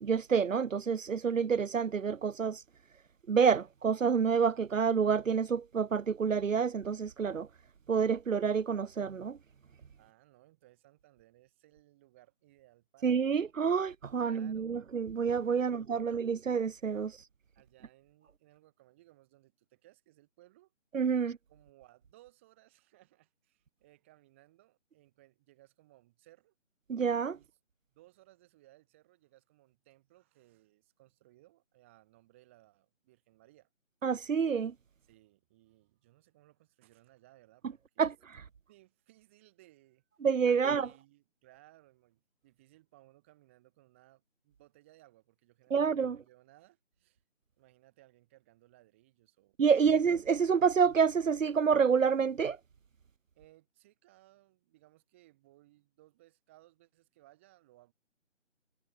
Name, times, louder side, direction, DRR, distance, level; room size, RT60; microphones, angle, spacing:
voice 1, 0.0-2.6 3.3-7.5 7.9-9.4 13.0-17.1 20.9-21.4 26.9-27.4 34.0-34.7 38.0-38.1 40.2-40.9 45.7-46.2 49.6-52.6, right 6 dB, 85° right, 0.9 m, -28 dB
voice 2, 10.0-13.4 14.2-14.8 15.5-16.3 17.5-20.7 21.1-26.5 27.3-27.6 27.9-33.7 35.0-38.1 38.7-40.1 40.5-47.2 47.6-49.9 53.3-57.9, right 17 dB, 10° right, 6.9 m, -63 dB
figure-of-eight pair, 180°, 38 cm